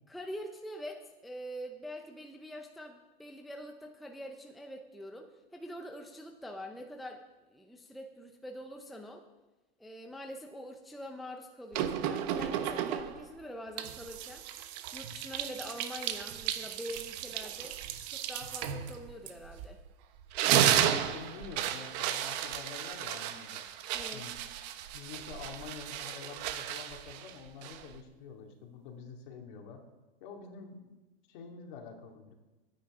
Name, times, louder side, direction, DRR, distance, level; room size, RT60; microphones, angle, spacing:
voice 1, 0.1-7.2 7.5-9.2 9.8-14.4 14.9-17.8 18.1-19.8 23.9-24.2, equal, ahead, 3 dB, 0.6 m, -44 dB
sound 1, 11.7-13.3 13.8-19.8 20.2-28.0, right 10 dB, 45° right, 1.1 m, -33 dB
voice 2, 20.5-23.6 24.1-24.3 24.9-29.8 30.2-31.0 31.3-32.3, left 6 dB, 55° left, 2 dB, 2.6 m, -47 dB
23.5 x 9.7 x 3.8 m, 1.1 s
supercardioid pair, 150°, 29 cm